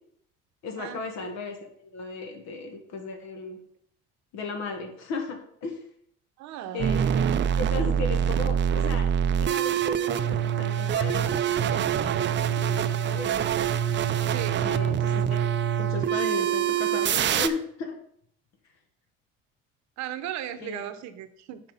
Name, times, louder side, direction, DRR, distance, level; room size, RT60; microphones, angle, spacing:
voice 1, 0.6-3.6 4.3-5.8 6.7-13.5 14.6-15.4 15.8-18.0 20.6-20.9, left 3 dB, 65° left, 3 dB, 1.7 m, -36 dB
voice 2, 6.4-6.9 14.3-14.6 20.0-21.6, right 11 dB, 65° right, 10 dB, 0.9 m, -36 dB
sound 1, 6.8-17.5, right 9 dB, 40° right, 0.5 m, -25 dB
5.7 x 5.4 x 5.4 m, 0.66 s
supercardioid pair, 80°, 30 cm